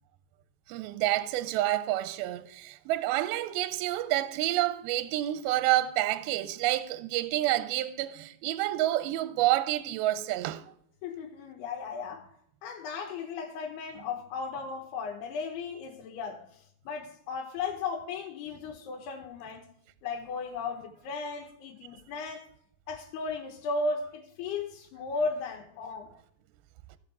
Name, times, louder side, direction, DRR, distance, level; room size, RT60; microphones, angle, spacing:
voice 1, 0.7-10.6, right 15 dB, 80° right, 2.3 m, -28 dB
voice 2, 11.0-12.3 12.6-19.7 20.0-22.5 22.9-26.1, left 4 dB, 75° left, 3.1 m, -35 dB
16.5 x 5.5 x 6.0 m
omnidirectional pair, 4.8 m